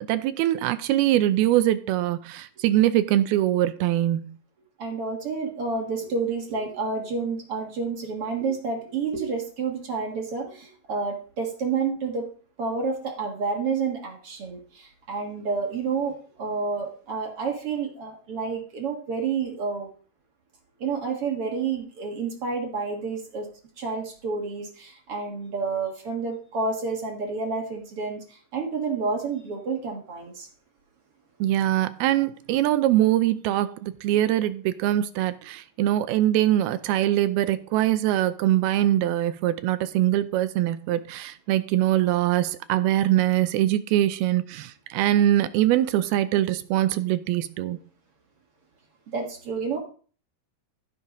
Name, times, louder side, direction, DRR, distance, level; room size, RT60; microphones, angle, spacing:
voice 1, 0.1-4.3 31.4-47.8, right 13 dB, 85° right, 2.7 m, -23 dB
voice 2, 4.8-12.3 12.6-19.9 20.8-23.5 23.8-30.5 49.1-49.8, right 4 dB, 45° right, 2.1 m, -29 dB
14.5 x 5.6 x 5.2 m
omnidirectional pair, 4.3 m